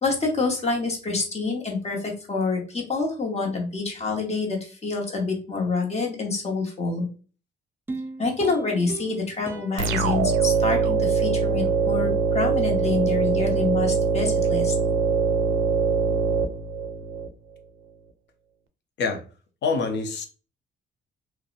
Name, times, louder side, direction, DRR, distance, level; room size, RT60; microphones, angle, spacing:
voice 1, 0.0-7.1 8.2-14.7, left 3 dB, 35° left, 0.9 m, -27 dB
sound 1, 7.9-11.2 11.6-11.7, right 2 dB, 10° right, 0.4 m, -39 dB
sound 2, 9.8-17.3, right 5 dB, 75° right, 0.4 m, -23 dB
voice 2, 19.6-20.3, left 4 dB, 65° left, 0.6 m, -25 dB
2.7 x 2.1 x 2.4 m
cardioid pair, 90°, 20 cm